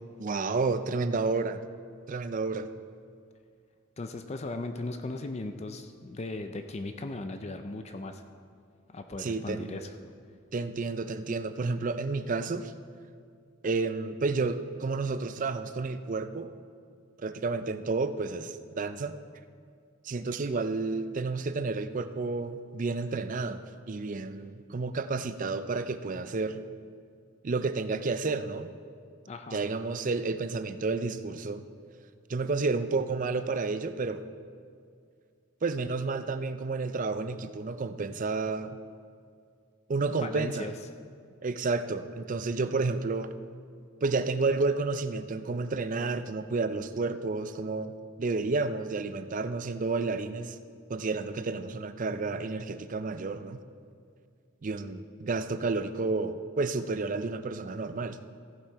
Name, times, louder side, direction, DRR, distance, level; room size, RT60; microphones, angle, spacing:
voice 1, 0.2-1.6 2.1-2.7 9.2-9.7 10.5-12.7 13.6-16.5 17.2-19.2 20.0-26.6 27.4-28.7 29.5-31.6 32.3-34.2 35.6-38.8 39.9-40.7 41.4-43.3 44.0-47.9 48.2-50.6 50.9-53.6 54.6-58.2, right 3 dB, 40° right, 11 dB, 0.4 m, -31 dB
voice 2, 4.0-8.2 8.9-9.9 29.3-29.6 40.2-40.7, left 2 dB, 30° left, 7 dB, 0.5 m, -37 dB
15.5 x 7.4 x 4.6 m, 2.2 s
head